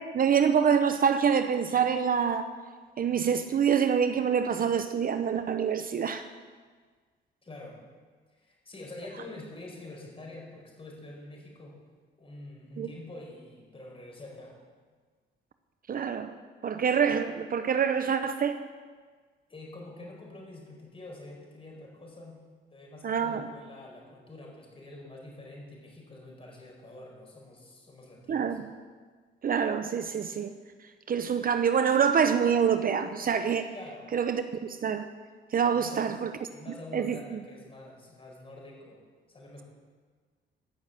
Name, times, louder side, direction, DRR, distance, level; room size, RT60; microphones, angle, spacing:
voice 1, 0.0-2.5 3.0-6.3 12.8-12.9 15.9-16.3 16.6-18.6 23.0-23.4 28.3-28.6 29.4-30.5 31.1-33.7 34.1-35.1 35.5-36.3 36.9-37.4, right 7 dB, 45° right, 9 dB, 0.7 m, -26 dB
voice 2, 7.4-7.8 8.4-11.8 12.2-14.6 19.5-22.4 22.7-28.6 33.7-34.1 35.7-36.1 36.5-39.0 39.3-39.6, left 2 dB, 25° left, -1 dB, 4.7 m, -46 dB
14.0 x 6.5 x 8.9 m, 1.5 s
cardioid pair, 95°, 20 cm